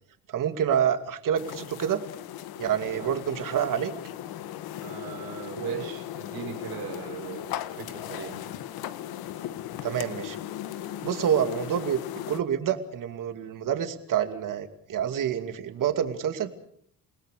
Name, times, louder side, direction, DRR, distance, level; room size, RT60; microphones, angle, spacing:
voice 1, 0.3-2.0 2.6-3.9 5.6-5.9 9.8-10.4 11.0-12.0 12.3-16.5, right 9 dB, 60° right, 8 dB, 2.6 m, -27 dB
sound 1, 1.4-12.4, left 12 dB, 85° left, 1.5 m, -37 dB
voice 2, 4.8-7.5 7.8-8.4, right 8 dB, 90° right, 5 dB, 4.5 m, -40 dB
29.0 x 18.5 x 6.7 m, 0.63 s
cardioid pair, 110°, 36 cm